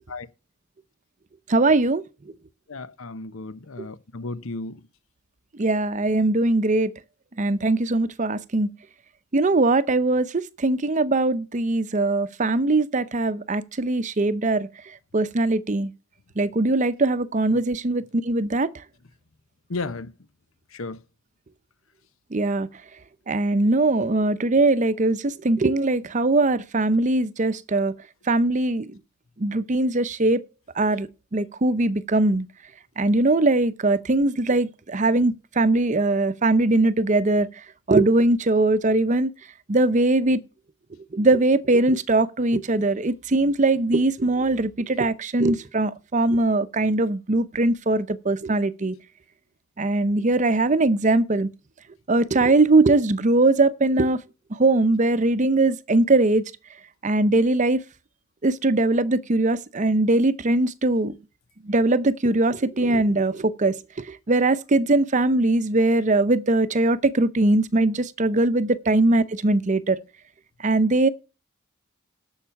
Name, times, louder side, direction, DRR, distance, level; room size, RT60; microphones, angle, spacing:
voice 1, 1.5-2.0 5.6-6.9 7.4-8.7 9.3-14.7 15.1-15.9 16.4-18.7 22.3-22.7 23.3-27.9 28.3-28.9 29.4-30.4 30.8-32.5 33.0-37.5 37.9-39.3 39.7-40.4 41.1-49.0 49.8-51.5 52.1-54.2 54.6-56.4 57.0-57.8 58.4-61.1 61.7-70.0 70.6-71.1, right 2 dB, 35° right, 0.6 m, -21 dB
voice 2, 2.7-4.8 19.7-20.1 20.7-21.0, left 3 dB, 80° left, 0.9 m, -34 dB
11.5 x 7.2 x 5.8 m
head